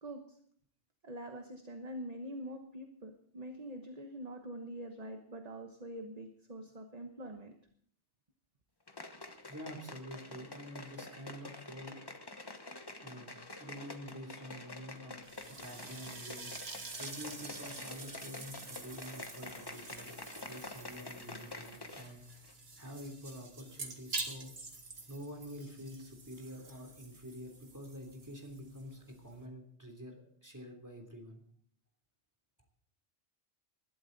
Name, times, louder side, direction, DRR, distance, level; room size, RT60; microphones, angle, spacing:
voice 1, 0.0-0.4 1.0-7.5, right 1 dB, 35° right, 5 dB, 1.2 m, -45 dB
sound 1, 8.9-22.2 22.4-22.5, left 2 dB, 25° left, 1.0 m, -48 dB
voice 2, 9.2-12.0 13.0-15.2 15.5-16.5 17.0-20.2 20.5-22.2 22.8-24.5 25.1-31.4, equal, 15° right, 2 dB, 3.2 m, -48 dB
sound 2, 15.2-29.5, right 3 dB, 70° right, 2.1 m, -47 dB
20.5 x 12.0 x 4.0 m, 0.62 s
omnidirectional pair, 1.1 m